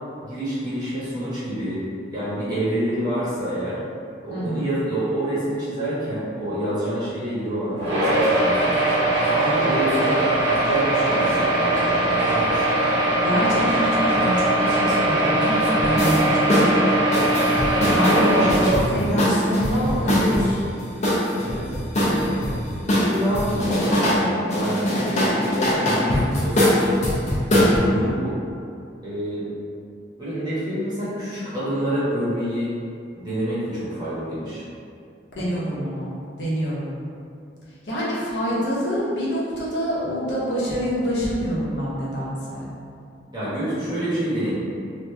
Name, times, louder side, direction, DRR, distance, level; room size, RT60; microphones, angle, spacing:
voice 1, 0.2-1.8 2.1-3.8 4.2-8.8 9.1-12.0 12.3-12.8 18.1-19.4 21.4-21.6 21.9-22.3 22.7-26.9 27.5-28.3 29.0-29.5 30.2-32.7 33.1-34.6 43.3-44.5, right 1 dB, 25° right, -12 dB, 1.3 m, -27 dB
voice 2, 4.3-4.7 13.2-16.6 17.9-20.6 35.4-36.9 37.8-42.7, equal, 70° left, -8 dB, 0.9 m, -26 dB
sound 1, 7.8-18.5, right 1 dB, 70° right, 1.0 m, -21 dB
sound 2, 15.8-16.2 16.5-16.7 17.1-20.5 21.0-22.6 22.9-24.2 24.5-27.8, equal, 40° left, 0.7 m, -21 dB
3.1 x 2.6 x 3.3 m, 2.5 s
head